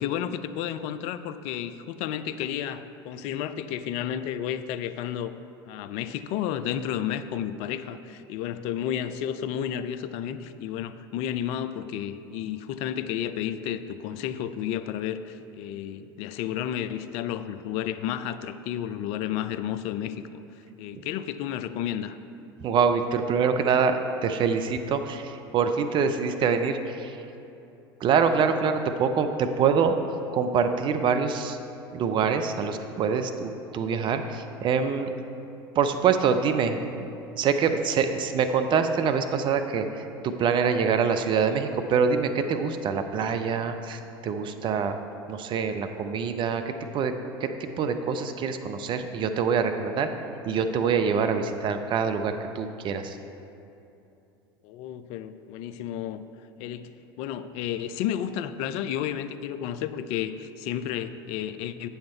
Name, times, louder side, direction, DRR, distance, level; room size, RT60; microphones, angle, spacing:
voice 1, 0.0-5.3 5.7-20.4 20.8-22.2 54.6-56.2 56.6-56.9 57.2-61.9, left 10 dB, 50° left, 12 dB, 0.4 m, -32 dB
voice 2, 22.6-27.2 28.0-30.0 30.3-31.6 31.9-35.1 35.8-37.1 37.4-45.0 45.3-47.1 47.4-47.5 47.8-50.1 50.5-53.2, right 6 dB, 40° right, 8 dB, 0.5 m, -25 dB
8.7 x 5.7 x 4.4 m, 2.8 s
figure-of-eight pair, 75°, 13 cm